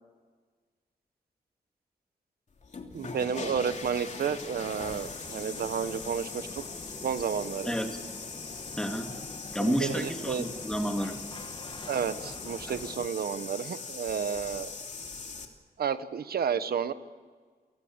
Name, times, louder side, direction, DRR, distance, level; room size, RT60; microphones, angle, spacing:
sound 1, 2.6-15.4, left 4 dB, 50° left, 3.0 m, -41 dB
voice 1, 2.9-6.6 7.0-7.8 9.6-10.5 11.9-14.7 15.8-16.9, right 7 dB, 75° right, 12 dB, 1.3 m, -31 dB
sound 2, 4.2-13.1, left 3 dB, 30° left, 1.8 m, -46 dB
voice 2, 7.6-8.0 8.8-9.1 9.5-11.2 12.7-12.8, equal, 5° left, 3 dB, 2.9 m, -30 dB
29.5 x 18.5 x 8.3 m, 1.5 s
wide cardioid pair, 100°, 16 cm